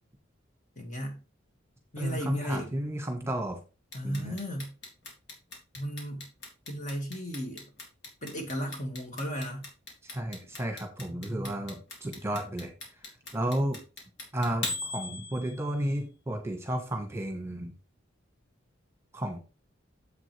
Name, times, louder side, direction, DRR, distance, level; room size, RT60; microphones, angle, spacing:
voice 1, 0.8-1.2 1.9-2.7 3.9-4.7 5.7-6.3 6.7-7.7 8.2-9.7 11.1-11.7, equal, 40° left, 2.1 m, -35 dB
voice 2, 2.0-3.6 4.0-4.4 10.1-12.7 13.3-13.8 14.3-17.7 19.1-19.4, right 1 dB, 15° right, 1.5 m, -32 dB
Clock, 3.9-15.9, left 2 dB, 60° left, 2.8 m, -39 dB
7.6 x 7.4 x 3.4 m
head